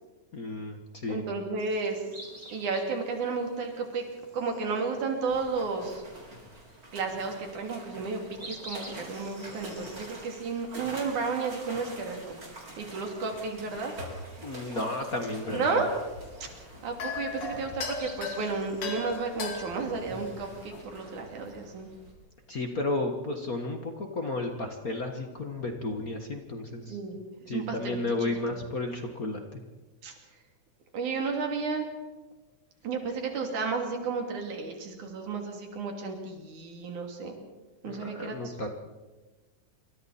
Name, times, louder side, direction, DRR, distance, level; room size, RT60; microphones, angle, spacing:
voice 1, 0.3-1.2 14.4-15.9 22.5-27.0 27.5-29.6 37.8-38.7, left 2 dB, 40° left, 4 dB, 1.4 m, -33 dB
voice 2, 1.1-2.0 2.5-4.0 4.3-6.0 6.9-12.4 12.8-13.9 15.5-15.9 16.8-21.9 26.9-27.2 27.5-28.3 30.0-30.1 30.9-31.9 32.8-37.3 37.8-38.7, right 4 dB, 75° right, 2 dB, 4.3 m, -32 dB
sound 1, 1.6-20.7, right 1 dB, 20° right, 4.1 m, -52 dB
sound 2, 5.3-22.1, right 1 dB, 40° right, 7.2 m, -46 dB
sound 3, 15.8-20.8, left 4 dB, 85° left, 4.0 m, -38 dB
27.5 x 24.5 x 4.3 m, 1.2 s
omnidirectional pair, 3.5 m